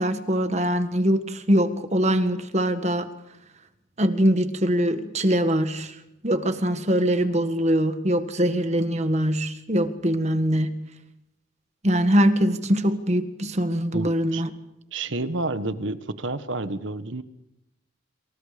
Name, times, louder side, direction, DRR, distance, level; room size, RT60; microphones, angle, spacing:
voice 1, 0.0-3.1 4.0-5.9 6.2-10.8 11.8-14.5, equal, 35° right, 9 dB, 1.7 m, -22 dB
voice 2, 13.9-14.4 14.9-17.2, right 2 dB, 65° right, 12 dB, 1.4 m, -30 dB
28.0 x 26.5 x 5.2 m, 0.85 s
head